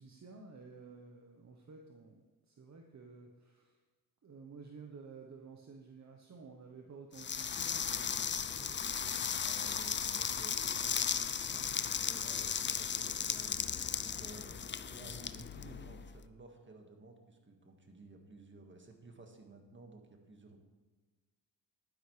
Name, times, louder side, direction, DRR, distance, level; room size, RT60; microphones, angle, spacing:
voice 1, 0.0-2.2 2.5-3.8 4.2-8.8, right 4 dB, 45° right, 2 dB, 1.1 m, -53 dB
sound 1, 7.2-16.1, left 7 dB, 30° left, 0.5 m, -36 dB
voice 2, 9.4-20.6, right 3 dB, 30° right, 4 dB, 1.8 m, -55 dB
11.5 x 10.5 x 3.3 m, 1.3 s
cardioid pair, 70°, 38 cm